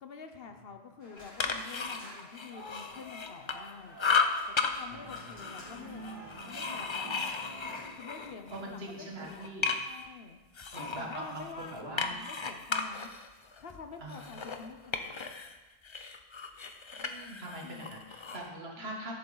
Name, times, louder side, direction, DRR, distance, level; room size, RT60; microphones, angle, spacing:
voice 1, 0.0-4.0 4.5-7.2 8.0-10.4 10.7-13.1 13.6-15.3 17.6-18.0 18.8-19.0, left 5 dB, 65° left, 6 dB, 1.0 m, -48 dB
sound 1, 1.0-7.9, right 1 dB, 15° left, 2.9 m, -48 dB
sound 2, 1.2-3.7 4.0-4.7 5.1-8.6 9.0-10.1 10.6-15.5 15.8-18.5, left 5 dB, 35° left, 0.5 m, -35 dB
voice 2, 4.9-5.3 8.5-9.7 10.7-12.2 14.0-14.4 17.0-19.2, right 1 dB, 70° right, -1 dB, 1.8 m, -42 dB
10.5 x 6.7 x 3.9 m, 1.1 s
omnidirectional pair, 1.1 m